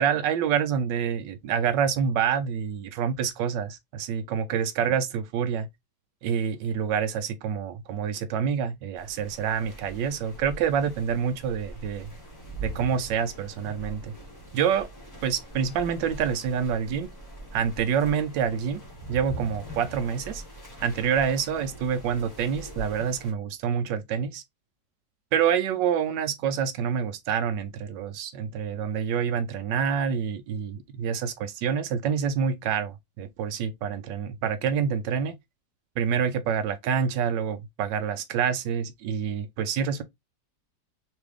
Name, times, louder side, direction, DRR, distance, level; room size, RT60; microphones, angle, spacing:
voice 1, 0.0-5.7 6.2-12.1 12.6-14.1 14.5-14.9 15.2-17.1 17.5-18.8 19.1-20.4 20.8-24.4 25.3-35.4 36.0-40.0, right 7 dB, 85° right, 1.3 m, -27 dB
sound 1, 9.0-23.3, right 2 dB, 10° left, 1.8 m, -42 dB
3.5 x 3.3 x 3.2 m
omnidirectional pair, 1.9 m